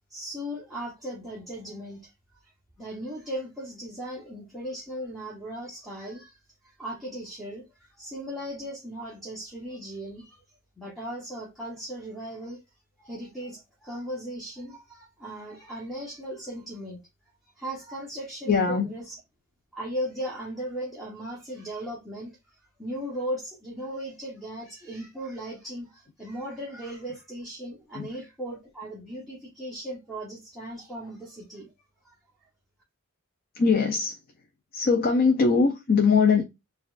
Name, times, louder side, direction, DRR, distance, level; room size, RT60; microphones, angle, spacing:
voice 1, 0.1-2.1 2.8-6.4 6.6-10.4 10.8-12.6 13.0-17.0 17.6-19.2 19.7-22.4 22.8-31.7 32.0-32.1, equal, ahead, 0.9 m, -37 dB
voice 2, 18.5-18.9 27.9-28.1 33.5-34.2 34.7-36.4, left 5 dB, 40° left, 0.5 m, -21 dB
6.5 x 2.3 x 2.4 m
head